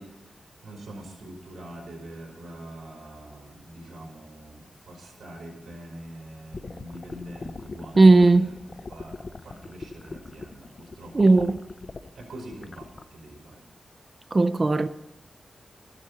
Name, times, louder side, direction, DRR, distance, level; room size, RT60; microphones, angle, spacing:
voice 1, 0.0-8.5 8.9-11.5 12.1-13.6, right 1 dB, 80° right, 4.4 m, -44 dB
sound 1, 6.5-13.0, left 3 dB, 45° left, 0.6 m, -40 dB
voice 2, 8.0-8.5 11.1-11.6 14.3-14.9, right 3 dB, 35° right, 0.5 m, -16 dB
13.0 x 12.0 x 4.1 m
wide cardioid pair, 100°, 0 cm